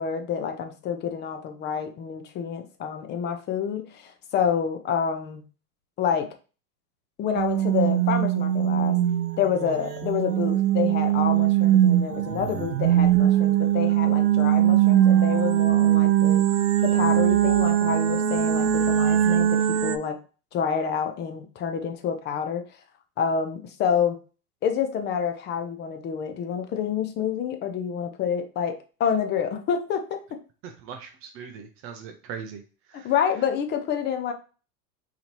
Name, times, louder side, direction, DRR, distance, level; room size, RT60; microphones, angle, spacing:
voice 1, 0.0-5.4 6.0-6.3 7.2-9.0 9.4-16.4 16.8-20.2 20.5-22.6 23.2-24.2 24.6-30.4 33.0-34.3, left 7 dB, 25° left, 6 dB, 0.5 m, -28 dB
sound 1, 7.3-20.0, right 11 dB, 80° right, 0.7 m, -21 dB
voice 2, 30.6-32.6 32.9-33.1, right 7 dB, 30° right, 5 dB, 0.5 m, -40 dB
4.1 x 2.8 x 2.9 m, 0.36 s
hypercardioid pair, 110°, 46 cm